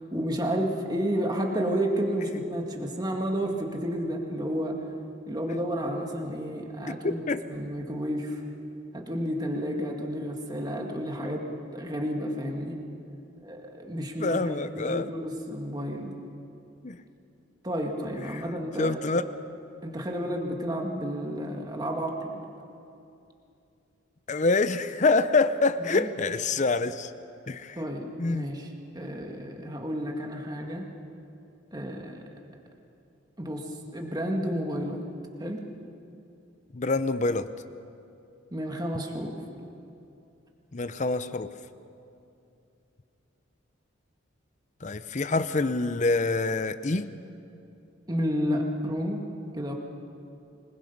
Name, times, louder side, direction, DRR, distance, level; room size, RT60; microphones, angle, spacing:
voice 1, 0.1-4.8 5.3-7.2 7.5-8.4 8.9-11.5 11.7-12.8 13.4-16.2 17.6-19.3 19.8-22.5 25.9-26.1 27.8-28.7 28.9-30.9 31.7-32.2 33.4-33.7 33.9-35.0 35.4-35.6 38.5-39.3 48.1-49.2 49.5-49.7, equal, 20° right, 1 dB, 1.9 m, -31 dB
voice 2, 14.2-15.1 16.8-17.0 18.3-18.4 18.8-19.2 24.3-27.1 27.5-27.8 28.2-28.5 36.7-37.5 40.7-41.5 44.8-47.1, left 3 dB, 40° left, 12 dB, 0.7 m, -26 dB
26.0 x 20.5 x 5.5 m, 2.7 s
head